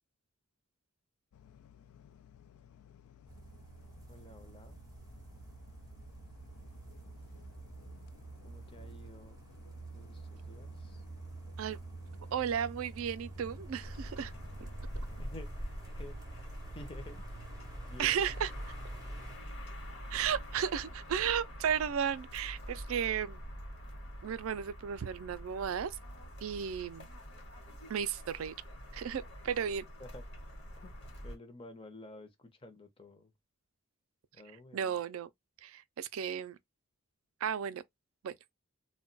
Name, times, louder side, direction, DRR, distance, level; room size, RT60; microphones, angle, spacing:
sound 1, 1.3-15.4, left 8 dB, 80° left, 0.3 m, -58 dB
sound 2, 3.3-19.4, right 3 dB, 20° right, 0.6 m, -48 dB
voice 1, 4.1-4.8 8.4-9.5 9.9-11.0 15.2-17.3 17.8-18.3 21.2-21.3 30.0-30.2 30.8-30.9 31.2-33.3 34.3-34.9, left 2 dB, 25° left, 0.6 m, -52 dB
voice 2, 12.3-14.3 14.6-14.7 18.0-18.5 20.1-23.4 24.2-26.0 26.4-27.1 27.9-28.6 28.9-29.9 34.7-35.3 35.6-36.6 37.4-37.8 38.2-38.4, right 8 dB, 70° right, 0.4 m, -34 dB
sound 3, 13.8-31.4, equal, 50° left, 1.1 m, -45 dB
2.3 x 2.2 x 3.8 m
head